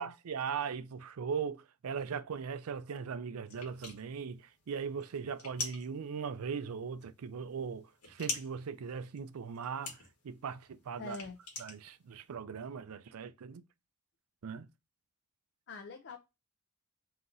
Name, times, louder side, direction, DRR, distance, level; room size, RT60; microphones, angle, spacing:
voice 1, 0.0-10.0 10.2-11.2 11.6-13.6 14.4-14.7, right 6 dB, 70° right, 0.4 m, -39 dB
sound 1, 3.5-12.3, left 3 dB, 80° left, 1.3 m, -45 dB
voice 2, 11.0-11.4 15.7-16.2, left 4 dB, 55° left, 0.6 m, -44 dB
3.8 x 2.9 x 3.8 m
head